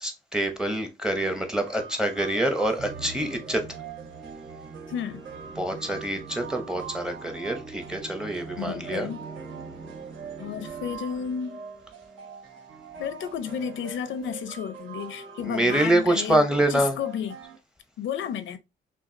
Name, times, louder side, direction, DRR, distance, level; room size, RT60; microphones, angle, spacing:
voice 1, 0.0-3.6 5.6-9.1 15.4-17.0, right 1 dB, 5° right, 0.7 m, -26 dB
sound 1, 1.1-17.6, right 7 dB, 80° right, 1.3 m, -44 dB
Musical instrument, 2.8-11.3, right 4 dB, 50° right, 0.7 m, -43 dB
voice 2, 4.9-5.2 8.6-9.3 10.4-11.6 13.0-17.4 18.0-18.6, left 8 dB, 80° left, 0.6 m, -32 dB
5.8 x 2.3 x 2.6 m
cardioid pair, 140°, 20 cm